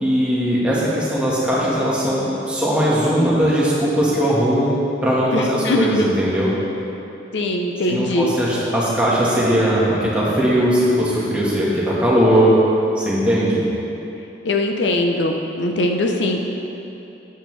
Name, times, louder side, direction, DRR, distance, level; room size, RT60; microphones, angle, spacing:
voice 1, 0.0-4.7 5.0-6.5 7.9-12.5 12.9-13.6, equal, 5° right, -7 dB, 1.4 m, -19 dB
voice 2, 5.3-6.1 7.3-8.3 14.4-16.5, left 1 dB, 85° left, 2 dB, 0.6 m, -21 dB
9.0 x 7.9 x 3.2 m, 2.9 s
head